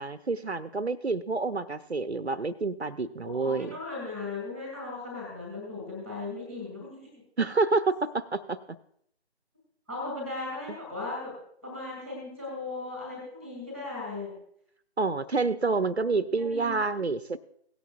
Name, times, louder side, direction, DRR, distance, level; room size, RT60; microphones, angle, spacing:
voice 1, 0.0-3.8 7.4-8.6 15.0-17.4, right 3 dB, 70° right, 12 dB, 0.8 m, -28 dB
voice 2, 3.2-7.1 9.9-11.3 11.6-14.3 16.4-16.7, left 3 dB, 5° left, -2 dB, 2.5 m, -37 dB
17.5 x 9.4 x 2.4 m, 0.67 s
figure-of-eight pair, 165°, 33 cm